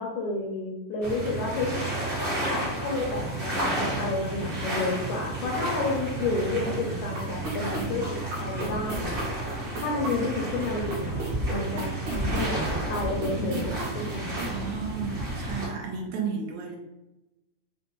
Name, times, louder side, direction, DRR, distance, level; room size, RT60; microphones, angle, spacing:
voice 1, 0.0-1.8 2.5-8.0 8.4-9.1 9.8-11.1 11.5-12.6 12.9-14.4, left 3 dB, 80° left, -2 dB, 1.9 m, -30 dB
sound 1, 1.0-15.7, right 1 dB, 50° right, 0.9 m, -31 dB
sound 2, 7.0-14.5, right 2 dB, 70° right, 2.1 m, -38 dB
voice 2, 14.5-16.8, right 5 dB, 85° right, 0 dB, 1.7 m, -33 dB
5.2 x 2.1 x 2.9 m, 0.98 s
omnidirectional pair, 3.9 m